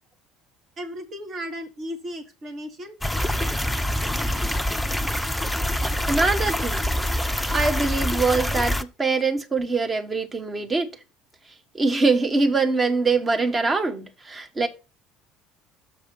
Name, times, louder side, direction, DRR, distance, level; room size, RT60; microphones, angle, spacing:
voice 1, 0.8-3.0, equal, 40° right, 1.8 m, -35 dB
sound 1, 3.0-8.8, left 1 dB, 5° left, 0.7 m, -25 dB
voice 2, 6.1-6.8 7.5-10.9 11.7-14.7, right 3 dB, 25° right, 1.3 m, -23 dB
6.8 x 4.8 x 5.6 m
figure-of-eight pair, 60°, 0 cm